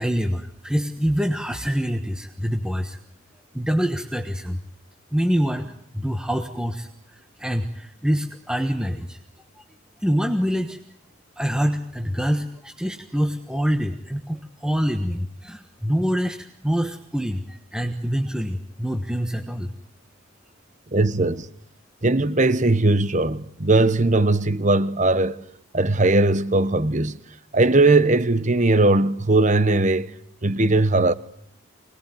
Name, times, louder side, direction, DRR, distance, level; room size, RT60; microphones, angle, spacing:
voice 1, 0.0-3.0 3.5-4.6 5.1-9.2 9.6-9.7 10.0-10.8 11.4-19.7, equal, 5° right, 1.3 m, -25 dB
voice 2, 20.9-21.5 22.0-25.4 25.7-27.2 27.5-30.1 30.4-31.1, right 2 dB, 35° right, 1.0 m, -19 dB
25.5 x 20.0 x 9.3 m
head